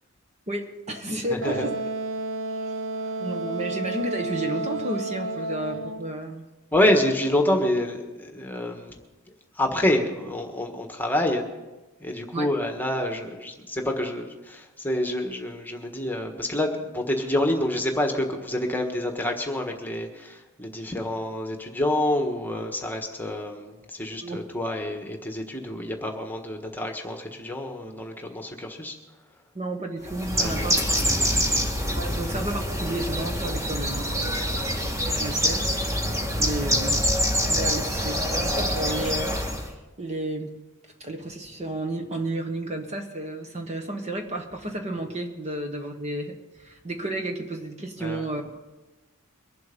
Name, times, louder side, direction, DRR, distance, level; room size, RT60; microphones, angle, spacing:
voice 1, 0.5-1.7 3.2-6.4 12.3-12.5 24.2-24.4 29.5-30.8 31.9-34.5 35.1-35.7 36.0-36.1 36.4-37.1 37.5-40.6 41.0-48.7, right 1 dB, 30° right, 4 dB, 1.2 m, -32 dB
voice 2, 1.3-1.7 3.1-3.2 6.7-9.0 9.3-11.5 12.0-29.0 30.4-30.9 31.2-31.3 48.0-48.2, left 1 dB, 10° left, 3 dB, 1.4 m, -27 dB
Wind instrument woodwind instrument, 1.4-6.1, right 2 dB, 60° right, 0.8 m, -31 dB
Bird, 30.0-39.7, equal, 15° right, 1.6 m, -25 dB
23.5 x 7.8 x 5.3 m, 1.1 s
head